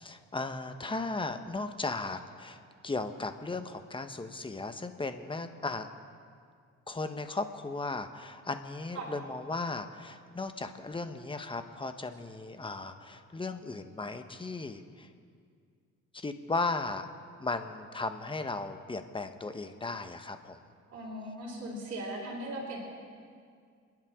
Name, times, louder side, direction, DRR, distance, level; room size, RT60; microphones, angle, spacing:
voice 1, 0.0-5.9 6.9-15.1 16.1-17.1 17.4-20.6, left 3 dB, 15° left, 8 dB, 1.1 m, -36 dB
voice 2, 20.9-22.8, right 1 dB, 55° right, -7 dB, 3.7 m, -38 dB
29.0 x 11.0 x 3.7 m, 2.1 s
cardioid pair, 90°, 30 cm